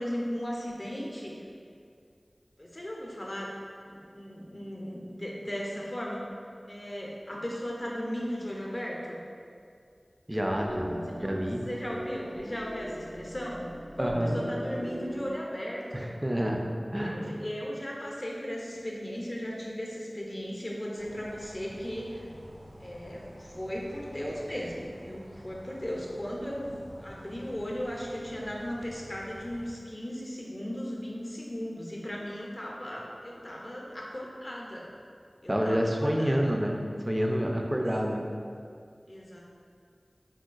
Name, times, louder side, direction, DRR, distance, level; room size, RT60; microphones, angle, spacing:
voice 1, 0.0-1.3 2.6-3.6 3.9-6.2 6.7-9.2 11.2-11.4 11.6-16.1 17.0-22.3 22.8-34.9 35.4-36.5 39.1-39.4, equal, 35° left, -3 dB, 0.5 m, -36 dB
sound 1, 10.3-15.3, equal, 85° left, 0.6 m, -39 dB
voice 2, 10.3-11.7 14.0-14.4 15.9-17.3 35.5-38.3, equal, 20° right, 1 dB, 0.3 m, -28 dB
sound 2, 21.0-29.7, equal, 90° right, 0.5 m, -50 dB
3.7 x 2.2 x 2.4 m, 2.3 s
wide cardioid pair, 45°, 0 cm